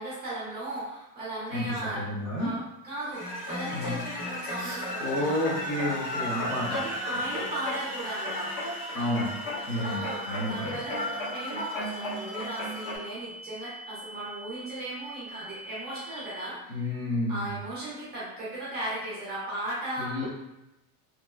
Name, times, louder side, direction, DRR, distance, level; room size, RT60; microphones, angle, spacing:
voice 1, 0.0-2.1 2.4-2.6 2.8-5.4 6.7-8.5 9.8-16.8 17.3-20.3, right 1 dB, 20° right, -9 dB, 0.7 m, -36 dB
voice 2, 1.9-2.5 3.7-3.9 4.6-6.8 8.9-9.3 9.7-10.8 16.7-17.6 20.0-20.3, left 1 dB, 40° left, -7 dB, 0.9 m, -31 dB
sound 1, 3.1-13.0, left 1 dB, 60° left, 1.3 m, -34 dB
sound 2, 6.5-16.5, right 1 dB, 60° right, 0.7 m, -44 dB
3.0 x 2.1 x 2.3 m, 0.93 s
cardioid pair, 160°, 46 cm